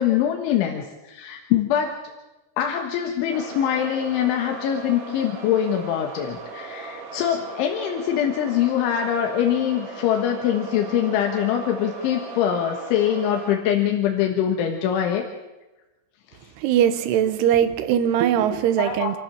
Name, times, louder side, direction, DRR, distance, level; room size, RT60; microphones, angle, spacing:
voice 1, 0.0-2.0 2.6-15.3 18.8-19.1, left 10 dB, 85° left, 3 dB, 3.8 m, -23 dB
sound 1, 3.3-13.6, right 4 dB, 50° right, 3.2 m, -38 dB
voice 2, 16.6-19.2, right 10 dB, 70° right, 10 dB, 2.9 m, -20 dB
27.0 x 15.0 x 7.4 m, 1.1 s
omnidirectional pair, 5.4 m